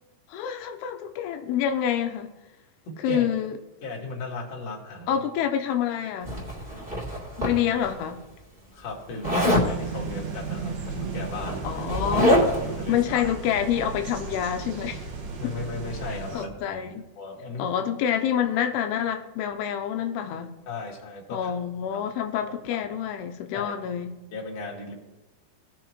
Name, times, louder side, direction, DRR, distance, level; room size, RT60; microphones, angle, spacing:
voice 1, 0.3-2.3 3.0-3.6 5.1-6.4 7.4-8.2 11.6-12.4 12.9-15.1 16.3-17.0 17.6-20.5 21.3-24.2, left 9 dB, 90° left, 2.7 m, -27 dB
voice 2, 2.8-3.3 3.8-5.2 8.7-11.7 12.1-12.3 12.6-13.3 15.4-16.8 17.2-17.7 20.7-21.5 21.9-22.0 22.7-22.9 23.5-23.7 24.3-24.9, left 3 dB, 45° left, 2.7 m, -36 dB
Zipper (clothing), 6.2-7.9 9.2-9.7 10.9-11.0 11.3-12.7, equal, 15° right, 2.1 m, -24 dB
sound 1, 9.2-16.5, right 5 dB, 65° right, 1.8 m, -35 dB
19.0 x 6.6 x 3.0 m
omnidirectional pair, 4.7 m